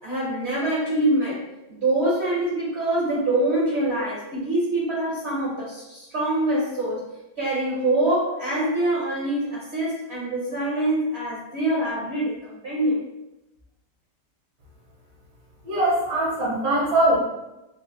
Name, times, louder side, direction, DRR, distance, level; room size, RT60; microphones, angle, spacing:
voice 1, 0.0-1.4 1.7-7.1 7.4-13.0, right 1 dB, 50° right, -6 dB, 0.9 m, -24 dB
voice 2, 15.6-17.2, right 1 dB, 70° right, -7 dB, 1.5 m, -21 dB
3.5 x 2.6 x 2.6 m, 0.96 s
omnidirectional pair, 1.8 m